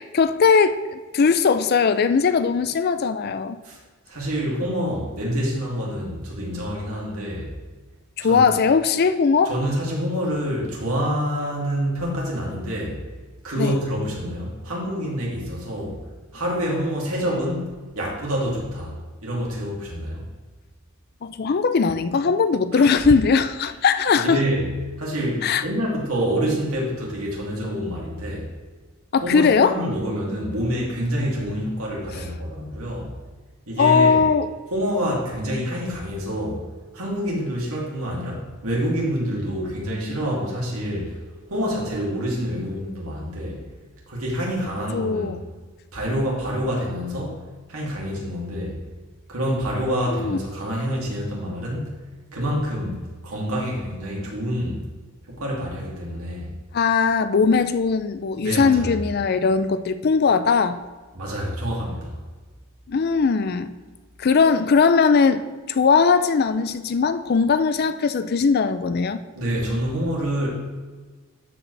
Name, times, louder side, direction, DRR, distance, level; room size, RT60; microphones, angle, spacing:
voice 1, 0.0-3.6 8.2-9.5 13.6-13.7 21.2-24.4 25.4-25.6 29.1-29.8 33.8-34.5 44.9-45.4 50.1-50.4 56.7-60.8 62.9-63.7 64.2-65.4 65.7-69.2, left 5 dB, 45° left, 12 dB, 0.4 m, -19 dB
voice 2, 4.1-7.5 8.2-8.5 9.4-13.0 13.4-16.0 16.3-18.9 19.2-20.2 22.7-22.9 24.1-28.5 29.2-33.2 33.7-34.2 34.7-36.6 36.9-41.2 41.5-43.6 44.1-45.4 45.9-47.4 47.7-48.8 49.3-51.9 52.3-54.9 55.3-56.5 58.4-58.9 61.1-62.2 69.4-70.5, equal, 90° right, -3 dB, 2.6 m, -27 dB
12.5 x 4.9 x 3.3 m, 1.3 s
head